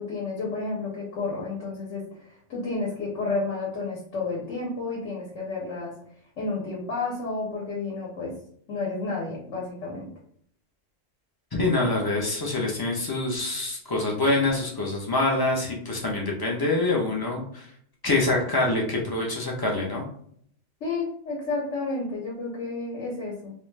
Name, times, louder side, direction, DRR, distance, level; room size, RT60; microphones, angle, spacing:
voice 1, 0.0-5.9 6.4-8.3 8.7-10.1 20.8-23.5, left 3 dB, 75° left, -3 dB, 1.1 m, -31 dB
voice 2, 11.5-17.7 18.0-20.0, left 2 dB, 40° left, -1 dB, 0.3 m, -25 dB
2.5 x 2.2 x 3.1 m, 0.64 s
omnidirectional pair, 1.3 m